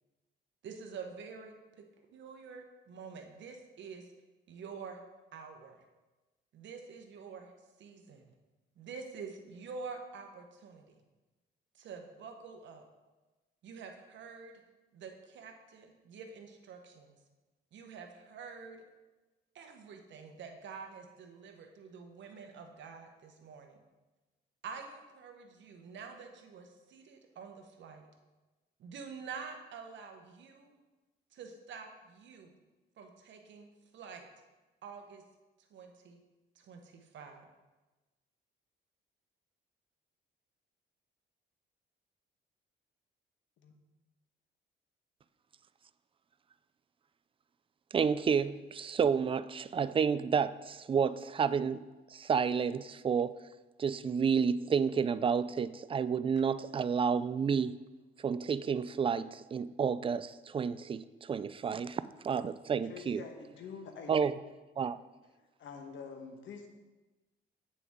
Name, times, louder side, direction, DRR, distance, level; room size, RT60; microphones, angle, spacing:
voice 1, 0.6-1.8 2.1-4.1 4.5-5.0 5.3-5.8 6.5-7.5 7.8-8.3 8.8-11.0 11.7-12.9 13.6-14.6 14.9-17.2 17.7-18.8 19.5-23.8 24.6-28.1 28.8-30.8 31.3-32.5 33.0-33.7 33.9-34.3 34.8-35.2 35.7-36.2 36.6-37.4, right 5 dB, 65° right, 4 dB, 1.1 m, -47 dB
voice 2, 47.9-51.8 52.1-53.3 53.8-57.8 58.2-63.2 64.1-64.3 64.8-65.0, right 6 dB, 25° right, 15 dB, 0.3 m, -30 dB
voice 3, 62.9-64.1 65.6-66.7, left 5 dB, 70° left, 4 dB, 1.3 m, -46 dB
8.6 x 6.9 x 3.6 m, 1.2 s
cardioid pair, 90°, 20 cm